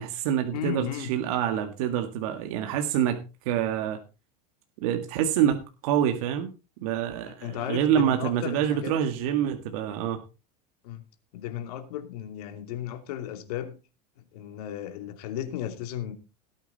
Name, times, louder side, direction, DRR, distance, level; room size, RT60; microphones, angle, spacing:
voice 1, 0.0-4.0 4.8-6.5 6.8-10.2, right 10 dB, 60° right, 1.9 m, -26 dB
voice 2, 0.5-1.1 7.4-9.0 10.8-11.0 11.3-13.8 14.3-16.1, left 11 dB, 70° left, 2.8 m, -34 dB
18.5 x 8.9 x 4.2 m
supercardioid pair, 160°, 21 cm